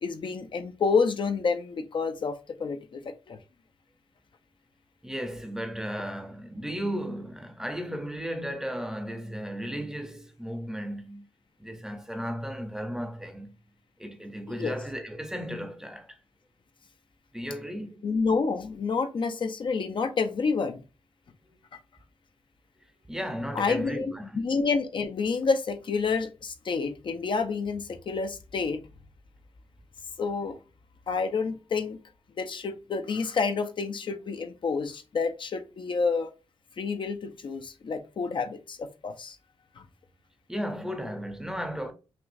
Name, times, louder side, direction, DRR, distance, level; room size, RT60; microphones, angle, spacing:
voice 1, 0.0-3.4 14.5-14.7 18.0-20.8 23.6-28.8 30.2-30.6 31.1-32.0 32.4-36.3 36.8-39.4 39.8-39.9, left 4 dB, 55° left, 0.6 m, -29 dB
voice 2, 5.0-11.3 11.6-13.6 14.0-16.2 17.3-18.0 23.1-24.4 40.5-41.9, equal, 5° right, 0.7 m, -35 dB
6.0 x 2.4 x 2.6 m
wide cardioid pair, 150°, 10 cm